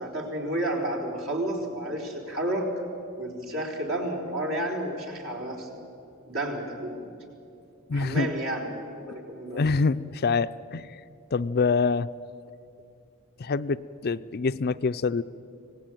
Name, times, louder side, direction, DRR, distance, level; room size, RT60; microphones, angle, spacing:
voice 1, 0.0-2.7 3.2-5.7 6.2-7.1 7.9-9.6, right 1 dB, 65° right, 1 dB, 4.3 m, -31 dB
voice 2, 7.9-8.3 9.5-10.9 11.3-12.1 13.4-15.2, left 4 dB, 45° left, 13 dB, 0.5 m, -25 dB
25.0 x 18.5 x 9.2 m, 2.7 s
head